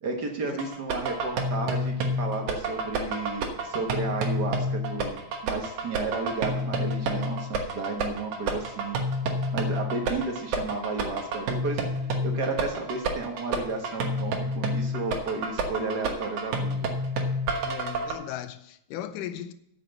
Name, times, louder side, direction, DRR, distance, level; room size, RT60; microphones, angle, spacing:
voice 1, 0.0-9.0 9.5-11.9 12.2-16.9, right 3 dB, 50° right, 1.2 m, -33 dB
sound 1, 0.6-18.1, right 1 dB, 70° right, 2.6 m, -29 dB
voice 2, 17.6-19.5, left 11 dB, 85° left, 2.3 m, -37 dB
8.6 x 7.7 x 7.9 m
omnidirectional pair, 3.6 m